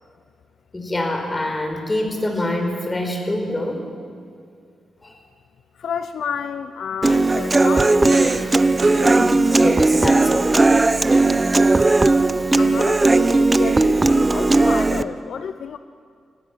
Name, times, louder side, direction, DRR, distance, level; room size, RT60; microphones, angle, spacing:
voice 1, 0.7-3.9 5.0-5.1 9.0-10.9, left 1 dB, 20° left, 4 dB, 5.0 m, -25 dB
voice 2, 5.7-8.1 12.6-15.8, left 7 dB, 70° left, 11 dB, 0.7 m, -30 dB
Human voice / Acoustic guitar, 7.0-15.0, right 2 dB, 25° right, 0.8 m, -17 dB
sound 1, 8.1-8.5 8.8-10.1 10.6-10.7, right 3 dB, 80° right, 6.4 m, -33 dB
27.0 x 18.0 x 7.5 m, 2.3 s
cardioid pair, 70°, 0 cm